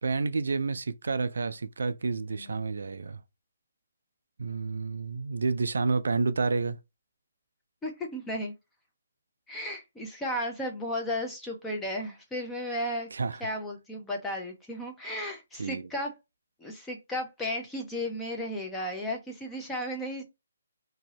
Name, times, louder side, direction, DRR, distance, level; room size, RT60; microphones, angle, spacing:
voice 1, 0.0-3.2 4.4-6.8 13.1-13.4 15.6-15.9, right 4 dB, 75° right, 0.3 m, -29 dB
voice 2, 7.8-8.5 9.5-13.1 13.4-16.1 16.6-20.2, left 1 dB, 10° left, 0.7 m, -34 dB
2.7 x 2.7 x 3.1 m
hypercardioid pair, 150°, 0 cm